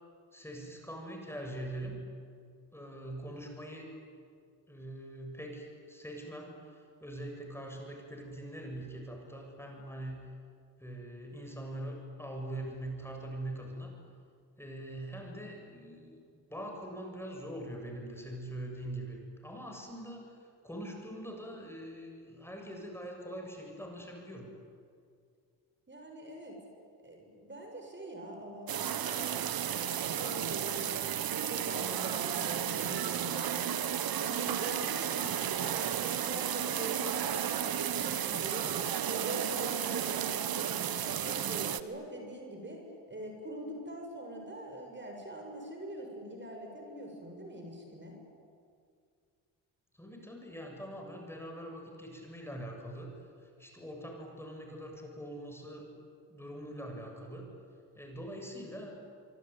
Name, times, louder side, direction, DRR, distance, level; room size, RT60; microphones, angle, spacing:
voice 1, 0.3-2.1 2.7-3.9 4.7-10.3 10.8-13.9 14.6-16.2 16.5-24.5 50.0-55.9 56.3-57.5 58.0-59.1, right 1 dB, 5° left, 1 dB, 7.4 m, -43 dB
voice 2, 25.9-26.6 27.0-31.0 31.3-33.8 34.1-38.7 39.1-42.8 43.1-48.2, right 1 dB, 25° right, 2 dB, 6.8 m, -43 dB
sound 1, 28.7-41.8, right 10 dB, 55° right, 1.4 m, -33 dB
24.5 x 24.5 x 9.6 m, 2.3 s
supercardioid pair, 70°, 42 cm